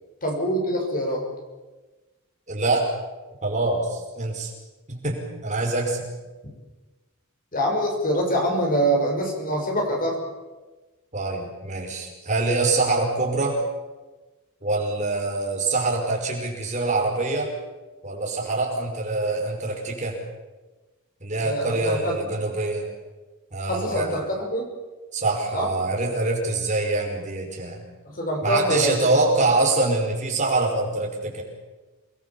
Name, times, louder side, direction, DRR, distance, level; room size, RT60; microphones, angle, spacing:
voice 1, 0.2-1.2 7.5-10.2 21.4-22.1 23.7-24.7 25.5-25.7 28.0-28.9, right 1 dB, 40° left, 2 dB, 6.4 m, -24 dB
voice 2, 2.5-2.9 3.4-4.5 4.9-6.1 11.1-13.6 14.6-17.5 18.0-20.2 21.2-22.9 23.5-24.2 25.1-27.8 28.4-31.4, right 2 dB, 35° right, 0 dB, 5.6 m, -25 dB
28.5 x 21.0 x 7.4 m, 1.2 s
head